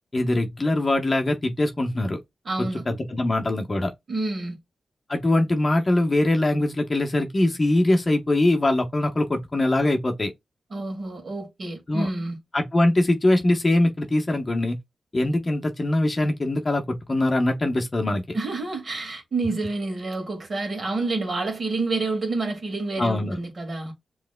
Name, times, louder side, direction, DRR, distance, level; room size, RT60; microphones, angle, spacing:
voice 1, 0.1-2.2 2.6-3.9 5.1-10.3 11.9-12.1 12.5-14.8 15.1-18.2 23.0-23.4, left 1 dB, 25° left, 0.9 m, -22 dB
voice 2, 2.5-2.8 4.1-4.6 10.7-12.4 18.3-23.9, right 3 dB, 45° right, 2.0 m, -28 dB
7.5 x 3.1 x 2.2 m
wide cardioid pair, 120°, 0 cm